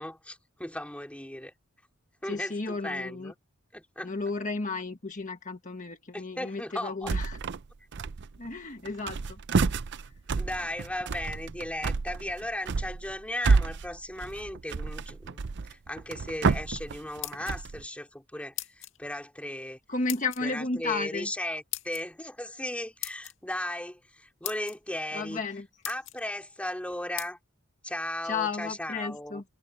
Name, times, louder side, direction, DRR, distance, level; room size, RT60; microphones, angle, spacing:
voice 1, 0.0-1.5 2.2-3.3 3.7-4.1 6.1-7.1 10.4-19.8 20.4-25.4 25.9-27.4 27.8-29.4, left 1 dB, 5° left, 2.9 m, -36 dB
voice 2, 2.2-3.3 4.0-7.4 8.4-9.4 19.9-21.3 25.1-25.7 28.2-29.4, left 4 dB, 40° left, 1.4 m, -33 dB
sound 1, 7.0-7.7 7.9-8.5 8.8-17.8, right 4 dB, 60° right, 0.5 m, -29 dB
sound 2, 17.0-17.8 18.6-19.0 20.1-20.4 21.7-22.0 23.0-23.3 24.1-24.2 24.4-24.8 25.4-25.5 25.8-26.2 27.2-27.3, left 14 dB, 70° left, 2.0 m, -37 dB
head